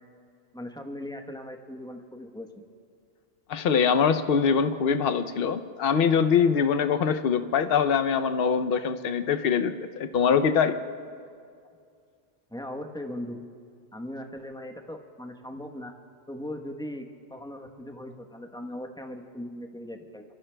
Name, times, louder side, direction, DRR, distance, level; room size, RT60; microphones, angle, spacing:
voice 1, 0.5-2.6 12.5-13.4 13.9-15.9 16.3-20.2, left 1 dB, 5° left, 3 dB, 0.9 m, -39 dB
voice 2, 3.5-10.8, left 6 dB, 65° left, 8 dB, 0.8 m, -23 dB
24.5 x 23.5 x 2.2 m, 2.3 s
omnidirectional pair, 1.1 m